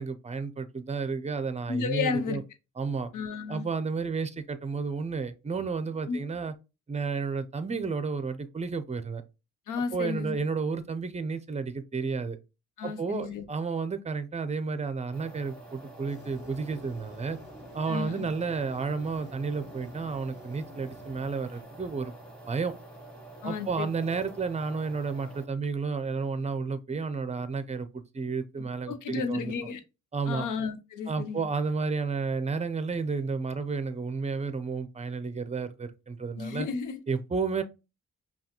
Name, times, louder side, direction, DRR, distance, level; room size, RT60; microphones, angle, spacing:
voice 1, 0.0-2.4 2.8-3.1 3.5-6.5 6.9-9.2 9.9-12.4 12.8-17.4 17.7-22.1 22.5-22.7 23.4-29.5 30.1-30.5 31.1-36.7 37.1-37.6, right 4 dB, 20° right, 0.5 m, -32 dB
voice 2, 1.7-2.4 3.1-3.7 6.1-6.2 9.7-10.4 12.8-13.4 17.9-18.3 23.4-23.9 28.9-29.8 30.3-31.4 36.3-37.0, left 5 dB, 85° left, 0.7 m, -32 dB
sound 1, 15.1-25.5, right 1 dB, 5° left, 1.4 m, -47 dB
sound 2, 16.1-21.6, left 1 dB, 35° left, 1.5 m, -51 dB
5.5 x 2.3 x 2.9 m
cardioid pair, 85°, 30 cm